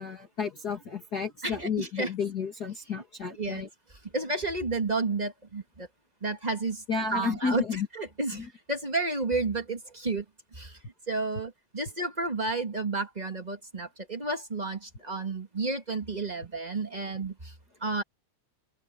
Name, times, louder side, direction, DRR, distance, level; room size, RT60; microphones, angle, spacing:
voice 1, 0.0-3.7 6.9-7.9 8.3-8.5, left 5 dB, 35° left, 2.5 m, -32 dB
voice 2, 1.4-2.1 3.4-3.6 3.9-5.9 6.2-6.8 7.1-10.2 10.5-10.8 11.1-17.5 17.8-18.0, right 3 dB, 25° right, 1.0 m, -31 dB
open air
omnidirectional pair, 3.4 m